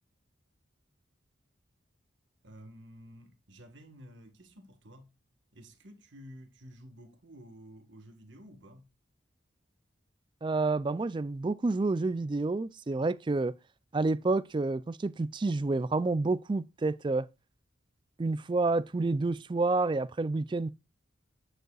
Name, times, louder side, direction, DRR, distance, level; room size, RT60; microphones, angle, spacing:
voice 1, 2.4-5.1 5.5-8.9, equal, 70° right, 1.5 m, -52 dB
voice 2, 10.4-13.5 13.9-17.3 18.2-20.7, right 3 dB, 25° right, 0.3 m, -29 dB
9.2 x 6.5 x 2.4 m
head